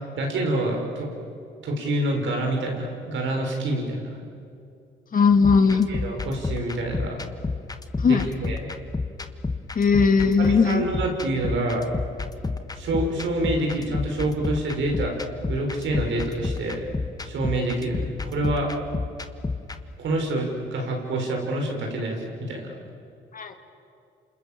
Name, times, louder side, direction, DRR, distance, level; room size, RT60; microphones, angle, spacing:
voice 1, 0.1-1.1 1.6-4.2 5.9-7.2 8.0-8.7 10.4-11.9 12.7-15.2 15.5-16.9 17.2-18.7 20.0-22.7, right 1 dB, 70° right, 2 dB, 5.8 m, -27 dB
voice 2, 5.1-5.9 8.0-8.3 9.8-10.8 23.3-23.6, left 5 dB, 45° left, 6 dB, 2.1 m, -18 dB
sound 1, 5.3-19.8, left 3 dB, 20° left, 1.4 m, -31 dB
28.5 x 27.5 x 7.6 m, 2.6 s
cardioid pair, 90°, 20 cm